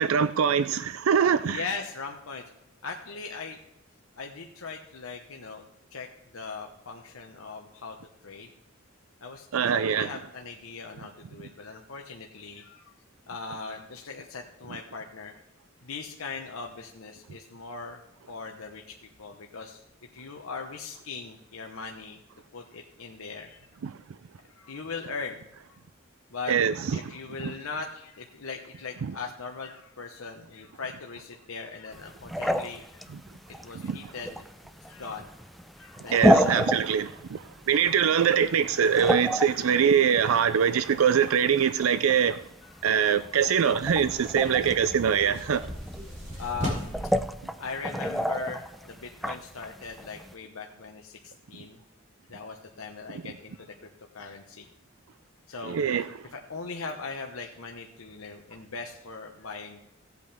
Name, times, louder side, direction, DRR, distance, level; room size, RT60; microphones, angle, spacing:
voice 1, 0.0-1.6 9.5-10.1 23.8-23.9 26.5-27.1 27.4-27.5 29.0-29.1 33.1-33.2 33.8-34.0 36.1-42.4 42.8-45.7 55.6-56.3, right 7 dB, 80° right, 0.4 m, -23 dB
voice 2, 1.4-2.4 2.8-3.6 4.2-5.7 5.9-6.1 6.3-8.0 8.2-8.5 9.2-12.9 13.3-15.3 15.8-18.0 18.3-19.8 20.1-22.2 22.5-23.7 24.5-25.8 26.3-26.5 26.9-33.2 33.6-34.4 34.9-35.3 35.8-36.6 37.7-38.0 42.7-42.9 44.4-44.6 46.3-47.0 47.6-51.8 52.3-53.7 54.1-54.7 55.5-56.0 56.3-59.8, left 4 dB, 85° left, 1.0 m, -39 dB
sound 1, 31.9-50.3, equal, ahead, 0.4 m, -31 dB
sound 2, 43.8-47.2, equal, 35° right, 3.4 m, -37 dB
16.5 x 8.3 x 3.5 m
head